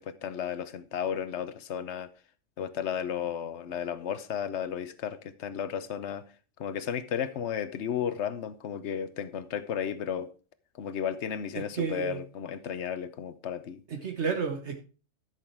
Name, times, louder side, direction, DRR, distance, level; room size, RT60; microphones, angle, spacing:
voice 1, 0.0-2.1 2.6-6.2 6.6-10.3 10.8-13.8, left 8 dB, 60° left, 1.1 m, -33 dB
voice 2, 11.7-12.2 13.9-14.8, right 6 dB, 60° right, 1.4 m, -31 dB
12.0 x 6.5 x 4.5 m
omnidirectional pair, 1.3 m